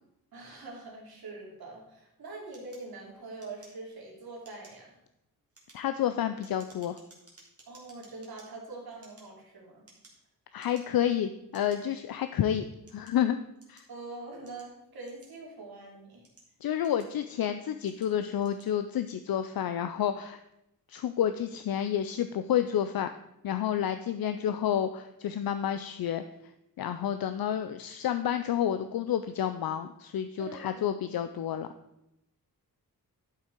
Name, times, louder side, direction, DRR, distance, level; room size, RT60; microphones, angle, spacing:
voice 1, 0.3-5.0 7.6-9.8 13.9-16.2 30.4-30.8, right 3 dB, 80° right, -2 dB, 2.7 m, -44 dB
sound 1, 2.5-4.1 4.4-4.9 5.4-8.5 8.9-10.3 10.6-11.1 11.5-11.8 12.5-13.9 14.5-15.6 16.1-17.3 17.8-18.1 18.4-18.7, right 2 dB, 40° right, 2.4 m, -58 dB
voice 2, 5.7-7.0 10.5-12.6 12.9-13.4 13.7-13.8 16.6-20.4 20.9-23.1 23.4-26.2 26.8-31.7, left 10 dB, 75° left, 9 dB, 0.5 m, -30 dB
11.5 x 5.7 x 4.5 m, 0.86 s
wide cardioid pair, 175°, 36 cm